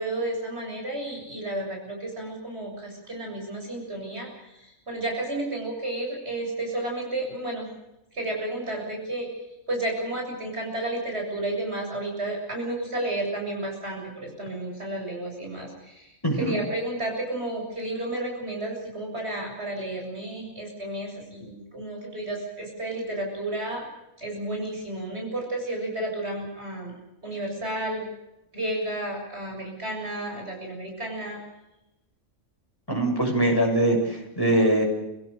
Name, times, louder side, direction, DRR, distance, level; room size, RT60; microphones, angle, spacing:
voice 1, 0.0-7.7 8.1-9.3 9.7-23.8 24.2-26.9 27.2-28.1 28.5-31.4, right 1 dB, 50° right, 0 dB, 7.7 m, -32 dB
voice 2, 16.2-16.6 32.9-34.8, right 1 dB, 15° left, 1 dB, 7.1 m, -22 dB
30.0 x 17.5 x 6.8 m, 0.92 s
omnidirectional pair, 1.4 m